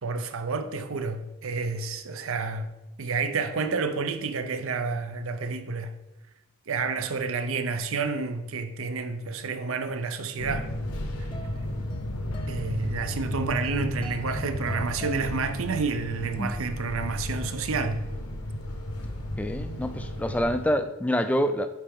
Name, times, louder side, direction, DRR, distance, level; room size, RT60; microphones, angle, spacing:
voice 1, 0.0-2.7 3.0-5.9 6.7-10.7 12.5-18.0, right 4 dB, 65° right, 0.6 m, -30 dB
Fixed-wing aircraft airplane, 10.4-20.7, left 1 dB, 80° left, 0.9 m, -34 dB
sound 1, 10.7-16.1, equal, 25° left, 0.7 m, -42 dB
voice 2, 19.4-21.7, equal, 5° left, 0.3 m, -26 dB
10.5 x 4.3 x 3.6 m
head